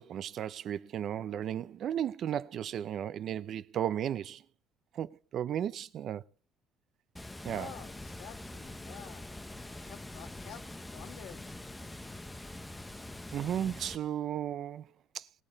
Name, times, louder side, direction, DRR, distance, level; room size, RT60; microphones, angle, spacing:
voice 1, 0.0-4.4 4.9-6.2 7.4-7.7 13.3-15.3, right 10 dB, 40° right, 0.6 m, -35 dB
Water, 7.2-14.0, left 1 dB, 5° left, 0.7 m, -44 dB
voice 2, 7.5-9.2 9.8-11.5, left 8 dB, 55° left, 1.5 m, -49 dB
20.5 x 8.7 x 4.1 m
cardioid pair, 170°, 0 cm